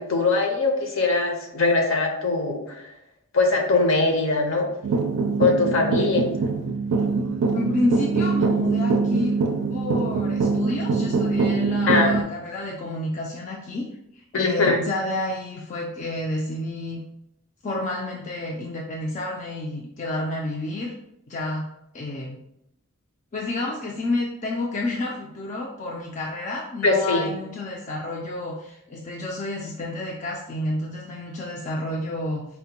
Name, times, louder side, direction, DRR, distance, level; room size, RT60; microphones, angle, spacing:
voice 1, 0.0-2.9 3.3-4.7 5.4-6.3 11.9-12.1 14.3-14.8 26.8-27.3, left 3 dB, 65° left, 2 dB, 0.7 m, -21 dB
sound 1, 4.8-12.2, right 4 dB, 85° right, 0.4 m, -23 dB
voice 2, 7.5-9.4 9.7-13.9 14.1-17.0 17.6-20.9 21.3-21.7 21.9-22.4 23.3-32.4, left 2 dB, 35° left, -1 dB, 0.4 m, -30 dB
4.3 x 2.1 x 2.8 m, 0.79 s
head